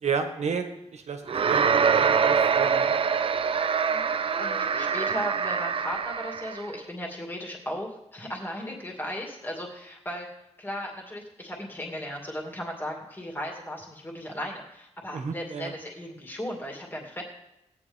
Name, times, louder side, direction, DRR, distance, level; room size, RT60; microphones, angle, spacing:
voice 1, 0.0-0.7 0.9-2.9 15.1-15.7, right 5 dB, 80° right, 6 dB, 1.4 m, -32 dB
sound 1, 1.3-6.7, right 6 dB, 55° right, 0.5 m, -24 dB
voice 2, 3.9-10.3 10.6-17.2, equal, 20° left, 0 dB, 2.3 m, -36 dB
18.0 x 9.6 x 3.6 m, 0.88 s
wide cardioid pair, 175°, 11 cm